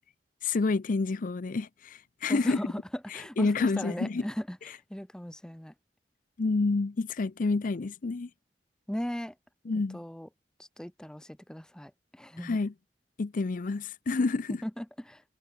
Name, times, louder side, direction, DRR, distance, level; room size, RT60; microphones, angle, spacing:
voice 1, 0.4-2.6 3.1-4.2 6.4-8.3 9.7-10.0 12.4-12.7 13.2-14.6, left 3 dB, 50° left, 0.5 m, -28 dB
voice 2, 2.3-4.6 4.9-5.7 8.9-9.3 9.7-10.3 10.8-12.6 14.6-15.2, equal, 5° left, 0.6 m, -38 dB
head